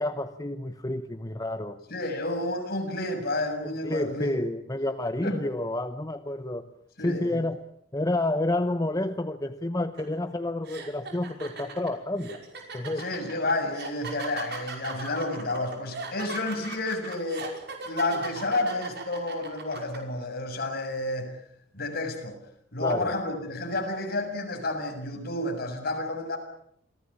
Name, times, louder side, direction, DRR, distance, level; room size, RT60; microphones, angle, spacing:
voice 1, 0.0-1.8 3.8-6.6 7.0-7.6 7.9-12.4 12.7-13.0 22.8-23.1, left 1 dB, 20° left, 8 dB, 1.0 m, -29 dB
voice 2, 1.9-4.3 5.2-5.4 7.0-7.4 13.0-17.5 17.8-21.3 21.7-22.4 22.7-26.4, left 2 dB, 55° left, 3 dB, 6.9 m, -30 dB
sound 1, 10.0-10.1 10.6-20.0, right 4 dB, 60° right, 5.5 m, -38 dB
27.5 x 18.5 x 8.7 m, 0.70 s
head